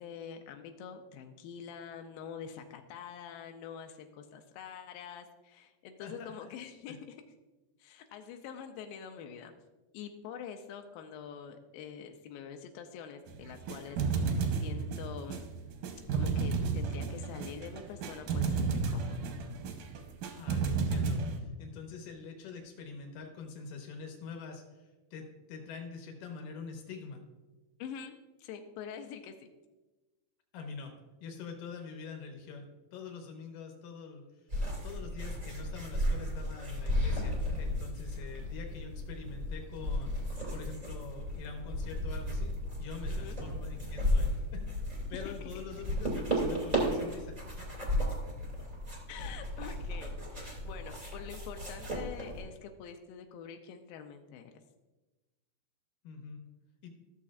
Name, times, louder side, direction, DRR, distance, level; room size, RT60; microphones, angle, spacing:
voice 1, 0.0-7.2 7.8-9.5 9.9-14.2 14.6-15.4 16.1-19.3 27.8-29.4 43.1-43.4 45.3-45.4 49.1-54.6, left 7 dB, 90° left, 5 dB, 2.0 m, -45 dB
voice 2, 6.0-6.5 6.9-7.0 20.4-27.2 30.5-30.9 31.2-32.7 32.9-34.2 34.8-40.1 40.5-42.5 42.8-44.6 45.1-47.3 56.0-56.4 56.8-56.9, left 5 dB, 65° left, 3 dB, 2.5 m, -45 dB
sound 1, 13.3-21.4, right 4 dB, 75° right, 2.0 m, -32 dB
sound 2, 34.5-52.4, equal, 20° right, 1.3 m, -34 dB
13.5 x 6.9 x 2.4 m, 1.1 s
omnidirectional pair, 4.8 m